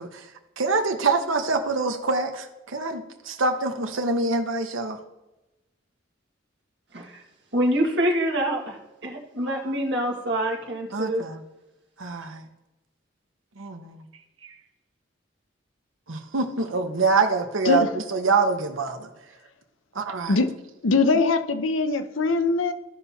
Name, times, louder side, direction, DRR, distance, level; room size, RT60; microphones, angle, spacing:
voice 1, 0.0-5.0 10.9-11.4 12.0-12.5 13.6-14.0 14.4-14.6 16.1-19.1 19.9-20.4, right 3 dB, 80° right, 6 dB, 1.0 m, -25 dB
voice 2, 7.5-11.2, right 1 dB, 60° right, 0 dB, 1.8 m, -26 dB
voice 3, 20.8-22.7, left 3 dB, 80° left, 9 dB, 0.7 m, -22 dB
15.0 x 5.8 x 2.8 m, 1.0 s
head